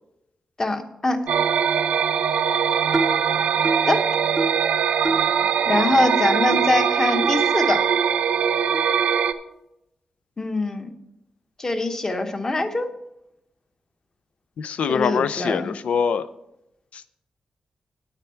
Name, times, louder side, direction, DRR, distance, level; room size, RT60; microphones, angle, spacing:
voice 1, 0.6-1.2 3.9-4.0 5.7-7.9 10.4-10.9 11.6-12.9 14.9-15.7, left 2 dB, 25° left, 7 dB, 1.0 m, -23 dB
sound 1, 1.3-9.3, right 7 dB, 90° right, 0.6 m, -21 dB
sound 2, 2.9-3.2 3.6-3.9 4.4-4.6 5.0-5.3 5.8-5.9 6.5-6.6 7.2-7.3 8.0-8.1 8.7-8.9, right 1 dB, 10° right, 0.6 m, -27 dB
voice 2, 14.6-16.3 16.9-17.1, left 6 dB, 75° left, 15 dB, 0.5 m, -24 dB
9.5 x 8.9 x 4.4 m, 0.85 s
wide cardioid pair, 145°, 2 cm